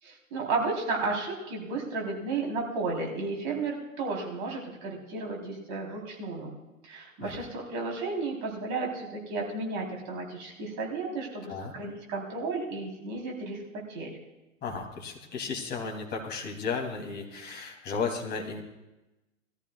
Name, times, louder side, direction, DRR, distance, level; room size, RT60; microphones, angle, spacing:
voice 1, 0.0-6.5 6.8-13.6 13.9-14.1, right 3 dB, 40° right, -1 dB, 3.6 m, -33 dB
voice 2, 14.6-18.6, left 5 dB, 25° left, 0 dB, 2.8 m, -34 dB
20.5 x 14.0 x 2.3 m, 1.0 s
figure-of-eight pair, 100°, 40 cm